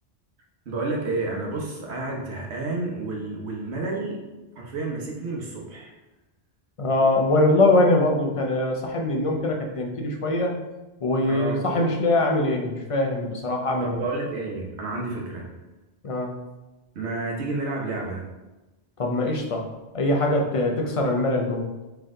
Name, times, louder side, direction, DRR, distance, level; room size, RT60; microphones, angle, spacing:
voice 1, 0.7-4.2 4.6-5.9 11.3-11.7 13.8-15.5 16.9-18.2, right 3 dB, 85° right, -1 dB, 1.2 m, -30 dB
voice 2, 6.8-10.5 11.0-14.0 16.0-16.3 19.0-19.7 19.9-21.7, left 2 dB, 40° left, 2 dB, 0.6 m, -22 dB
4.3 x 3.4 x 3.7 m, 1.1 s
omnidirectional pair, 1.1 m